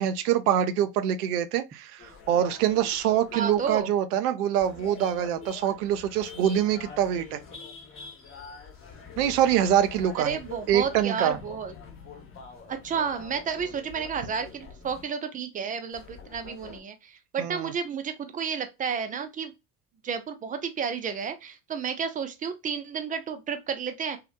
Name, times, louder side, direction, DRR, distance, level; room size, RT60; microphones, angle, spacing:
voice 1, 0.0-7.4 9.2-10.4 10.7-11.4 17.4-17.7, right 10 dB, 65° right, 0.5 m, -25 dB
sound 1, 2.0-3.8 4.6-11.1 11.3-15.0 15.9-16.8, left 5 dB, 25° left, 1.1 m, -45 dB
voice 2, 3.3-3.9 10.2-11.7 12.7-19.5 20.0-24.2, right 6 dB, 20° right, 0.4 m, -31 dB
2.7 x 2.1 x 2.4 m
figure-of-eight pair, 70°, 49 cm